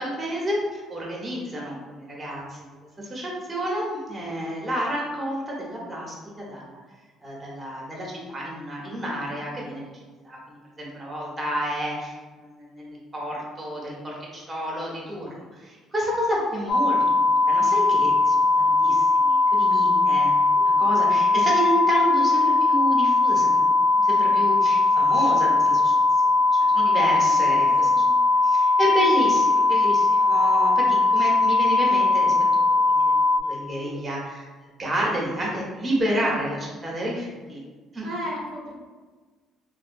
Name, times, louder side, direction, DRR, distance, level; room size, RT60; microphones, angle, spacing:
voice 1, 0.0-2.6 3.0-6.8 7.2-9.8 10.2-20.3 20.6-23.5 24.0-26.3 26.6-28.0 28.4-32.3 32.7-37.6 37.9-38.1, equal, 25° right, -4 dB, 1.0 m, -30 dB
sound 1, 16.7-33.4, left 3 dB, 45° left, 0.5 m, -20 dB
voice 2, 20.5-21.0 27.1-28.1 33.7-34.0 38.0-38.7, equal, 70° right, -5 dB, 0.6 m, -37 dB
3.1 x 2.3 x 2.5 m, 1.4 s
supercardioid pair, 85°, 0 cm